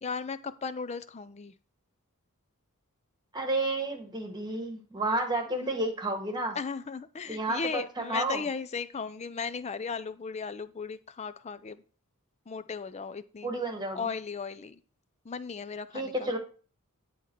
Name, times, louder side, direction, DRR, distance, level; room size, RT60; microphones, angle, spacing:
voice 1, 0.0-1.5 5.5-5.7 6.6-11.8 12.5-13.6 13.9-14.8 15.2-16.3, left 5 dB, 30° left, 13 dB, 0.4 m, -36 dB
voice 2, 3.3-6.6 7.3-7.8 8.1-8.4 13.4-14.1 15.9-16.4, right 2 dB, 20° right, 3 dB, 1.4 m, -31 dB
10.0 x 3.6 x 4.4 m, 0.40 s
head